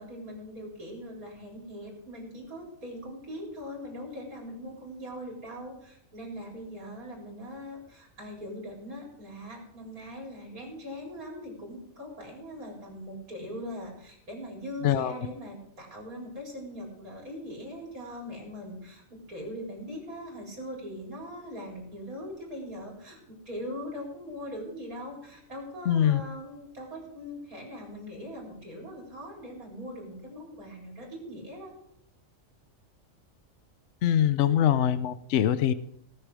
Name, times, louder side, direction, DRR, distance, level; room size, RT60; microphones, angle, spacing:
voice 1, 0.0-31.7, equal, 85° right, -1 dB, 4.8 m, -41 dB
voice 2, 25.9-26.2 34.0-35.7, left 10 dB, 60° left, 15 dB, 0.9 m, -23 dB
19.0 x 6.7 x 4.9 m, 0.73 s
omnidirectional pair, 1.5 m